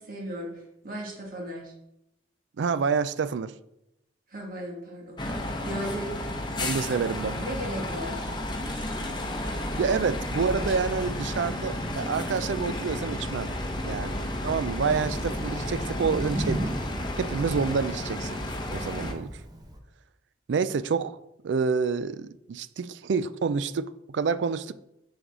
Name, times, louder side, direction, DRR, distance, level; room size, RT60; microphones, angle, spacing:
voice 1, 0.0-1.7 4.3-6.1 7.3-8.4 8.7-9.1, equal, 50° right, 1.9 m, -37 dB
voice 2, 2.6-3.5 6.6-7.4 9.8-13.5 13.8-16.7 17.2-18.4 18.7-19.4 20.5-21.2 21.4-24.7, right 5 dB, 75° right, 0.4 m, -28 dB
sound 1, 5.2-19.1, left 1 dB, 25° left, 0.8 m, -32 dB
Thunder, 14.8-19.8, equal, 20° right, 0.8 m, -36 dB
7.0 x 5.3 x 3.7 m
head